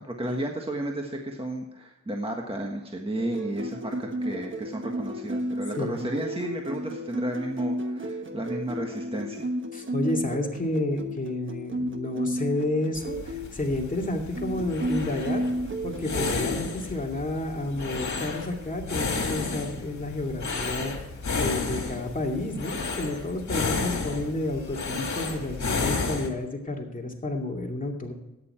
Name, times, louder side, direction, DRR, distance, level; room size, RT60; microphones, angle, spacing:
voice 1, 0.0-9.5, right 1 dB, 20° right, 1 dB, 1.5 m, -33 dB
sound 1, 3.2-13.5 14.3-16.6 17.7-18.2, right 1 dB, 40° right, 1.3 m, -32 dB
voice 2, 9.7-15.5 15.8-20.9 21.4-28.1, left 2 dB, 25° left, 0 dB, 2.5 m, -30 dB
sound 2, 12.9-26.3, left 4 dB, 70° left, 2.3 m, -32 dB
13.5 x 9.7 x 4.4 m, 1.0 s
wide cardioid pair, 100°, 30 cm